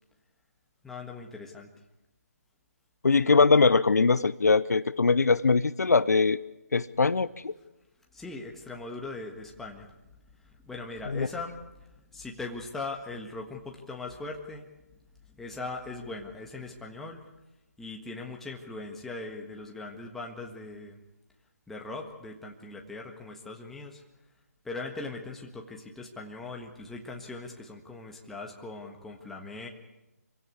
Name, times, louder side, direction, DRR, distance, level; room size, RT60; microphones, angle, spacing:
voice 1, 0.8-1.7 8.1-9.9 10.4-11.9 12.1-14.7 15.3-17.2 17.8-21.0 21.7-24.0 24.6-29.7, left 3 dB, 5° left, 1 dB, 1.6 m, -40 dB
voice 2, 3.0-6.4 6.7-7.5 11.1-11.3, left 4 dB, 75° left, 16 dB, 0.8 m, -22 dB
25.5 x 16.5 x 8.6 m, 1.0 s
figure-of-eight pair, 155°, 9 cm